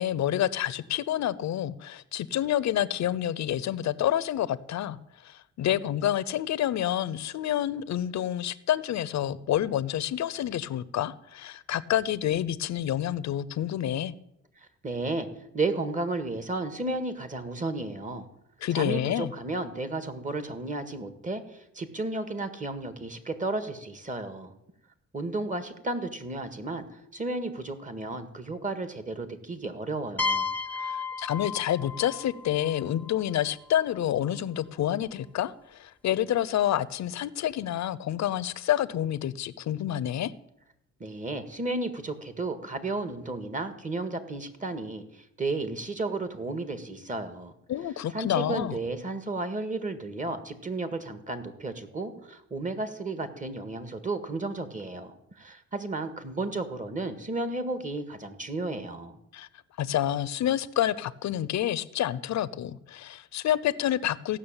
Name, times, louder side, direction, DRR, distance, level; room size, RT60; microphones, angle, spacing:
voice 1, 0.0-5.0 5.2-14.1 18.6-19.3 30.8-40.3 47.7-48.8 59.3-59.5 59.8-64.4, left 11 dB, 65° left, 16 dB, 0.8 m, -28 dB
voice 2, 14.6-15.3 15.5-18.3 18.7-24.5 25.1-30.5 41.0-47.5 48.1-59.2, right 2 dB, 25° right, 10 dB, 1.8 m, -33 dB
sound 1, 30.2-33.8, left 4 dB, 5° left, 0.8 m, -33 dB
15.5 x 6.3 x 8.9 m, 0.81 s
cardioid pair, 90°, 30 cm